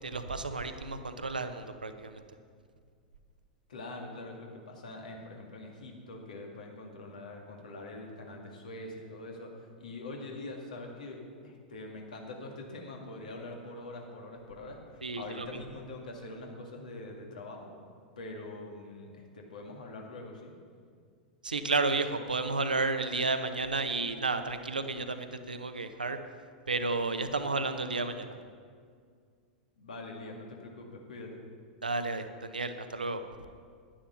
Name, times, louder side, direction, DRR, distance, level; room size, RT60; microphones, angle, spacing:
voice 1, 0.0-2.2 15.0-15.5 21.4-26.2 26.7-28.4 31.8-33.2, right 3 dB, 80° right, 8 dB, 0.8 m, -32 dB
voice 2, 3.7-11.2 11.4-17.7 18.2-20.5 29.8-31.4, left 2 dB, 70° left, 0 dB, 2.2 m, -44 dB
11.0 x 10.0 x 5.8 m, 2.1 s
figure-of-eight pair, 95°, 5 cm